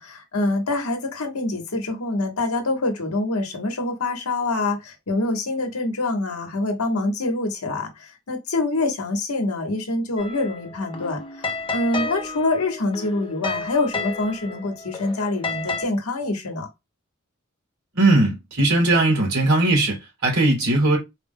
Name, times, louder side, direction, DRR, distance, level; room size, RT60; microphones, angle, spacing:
voice 1, 0.0-16.7, left 2 dB, 90° left, 1.1 m, -25 dB
sound 1, 10.2-15.9, left 3 dB, 25° left, 0.6 m, -32 dB
voice 2, 17.9-21.0, right 2 dB, 90° right, 2.6 m, -19 dB
4.4 x 2.1 x 3.5 m
head